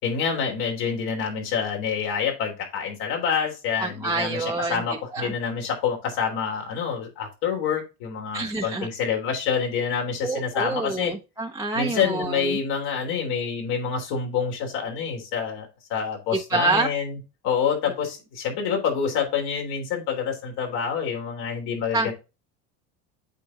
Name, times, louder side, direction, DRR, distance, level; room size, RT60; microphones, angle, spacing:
voice 1, 0.0-11.2 11.7-17.2 17.4-22.1, left 6 dB, 75° left, 1 dB, 3.6 m, -27 dB
voice 2, 3.8-4.8 5.1-5.3 8.3-8.9 10.2-12.6 16.5-16.9 21.9-22.1, right 3 dB, 10° right, 1 dB, 0.9 m, -26 dB
8.2 x 4.5 x 3.7 m, 0.28 s
supercardioid pair, 95°, 40 cm